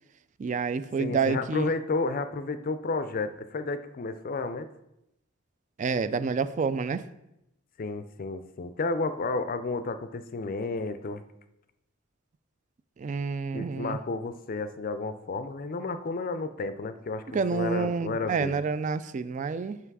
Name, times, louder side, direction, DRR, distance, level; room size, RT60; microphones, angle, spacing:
voice 1, 0.4-1.7 5.8-7.0 13.0-14.0 17.3-19.8, right 5 dB, 35° right, 14 dB, 0.3 m, -28 dB
voice 2, 1.0-4.7 7.8-11.2 13.5-18.6, left 3 dB, 45° left, 11 dB, 0.4 m, -32 dB
6.0 x 5.7 x 4.7 m, 0.85 s
head